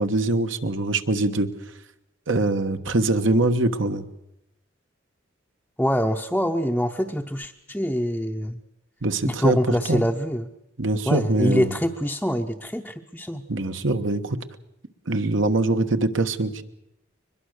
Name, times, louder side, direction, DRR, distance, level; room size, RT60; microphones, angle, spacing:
voice 1, 0.0-1.5 2.3-4.1 9.0-10.0 10.8-11.7 13.5-14.4 15.1-16.6, right 2 dB, 70° right, 8 dB, 1.3 m, -23 dB
voice 2, 5.8-8.6 9.2-10.5 11.1-13.4, equal, 5° left, 0 dB, 0.7 m, -25 dB
23.0 x 21.5 x 6.6 m, 0.85 s
head